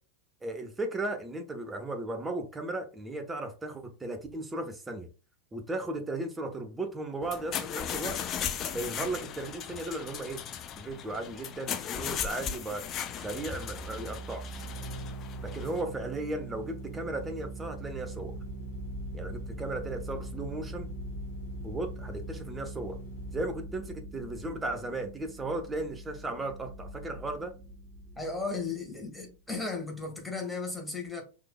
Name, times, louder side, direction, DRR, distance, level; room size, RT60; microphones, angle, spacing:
voice 1, 0.4-5.1 5.5-8.2 8.7-10.4 10.8-12.8 13.2-14.7 15.4-18.3 19.1-20.9 21.6-23.0 23.3-27.5, right 2 dB, 15° right, 1.2 m, -36 dB
sound 1, 7.2-15.8, left 8 dB, 35° left, 0.7 m, -37 dB
sound 2, 13.1-29.3, right 2 dB, 30° right, 1.9 m, -42 dB
sound 3, 14.6-23.6, left 1 dB, 65° left, 1.5 m, -47 dB
voice 2, 28.2-31.2, left 3 dB, 5° left, 2.0 m, -35 dB
5.7 x 3.7 x 2.3 m
figure-of-eight pair, 90°, 0 cm